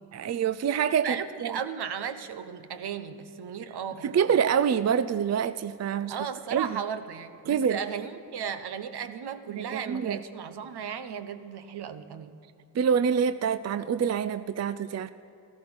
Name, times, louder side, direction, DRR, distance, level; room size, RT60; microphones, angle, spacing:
voice 1, 0.1-1.5 4.0-6.1 6.5-6.7 7.5-7.8 9.5-10.2 12.7-15.1, right 7 dB, 40° right, 14 dB, 0.5 m, -26 dB
voice 2, 1.0-4.2 6.1-12.4, right 7 dB, 70° right, 10 dB, 1.0 m, -35 dB
14.0 x 13.5 x 6.1 m, 2.9 s
cardioid pair, 55°, 40 cm